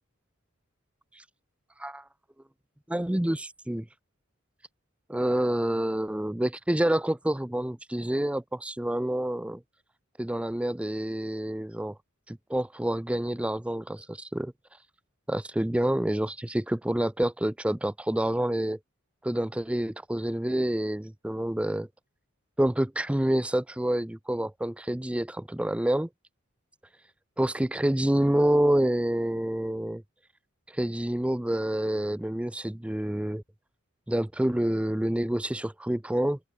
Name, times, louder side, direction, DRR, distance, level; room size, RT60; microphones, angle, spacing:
voice 1, 2.9-3.9 5.1-9.6 10.2-11.9 12.3-14.5 15.3-18.8 19.2-21.9 22.6-26.1 27.4-30.0 30.7-33.4 34.1-36.4, right 1 dB, 5° right, 0.4 m, -27 dB
open air
head